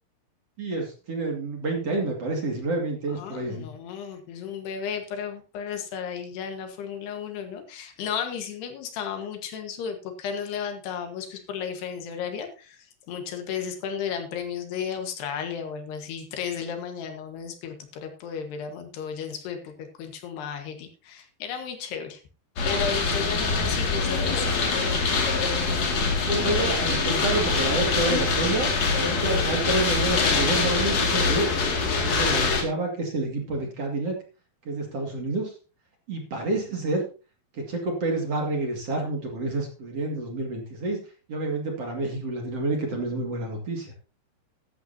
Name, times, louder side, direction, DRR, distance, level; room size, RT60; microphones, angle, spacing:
voice 1, 0.6-3.7 25.9-31.5 32.0-34.1 34.6-35.5 36.1-37.0 37.5-41.0 41.3-43.9, right 2 dB, 40° right, 1 dB, 2.8 m, -29 dB
voice 2, 3.1-22.2 22.7-24.5, left 7 dB, 75° left, 5 dB, 3.6 m, -34 dB
sound 1, 22.6-32.6, left 4 dB, 45° left, 3.2 m, -24 dB
15.0 x 11.5 x 2.8 m, 0.34 s
omnidirectional pair, 4.8 m